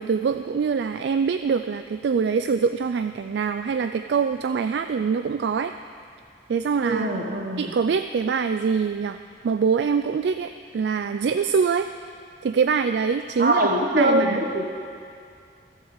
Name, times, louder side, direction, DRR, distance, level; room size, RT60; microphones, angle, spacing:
voice 1, 0.0-5.7 6.5-7.2 7.6-9.2 9.4-11.9 12.4-13.7 14.0-14.4, right 6 dB, 70° right, 9 dB, 0.3 m, -24 dB
voice 2, 6.8-7.7 13.4-14.6, right 1 dB, 50° right, 1 dB, 1.4 m, -22 dB
14.0 x 7.2 x 7.3 m, 2.3 s
head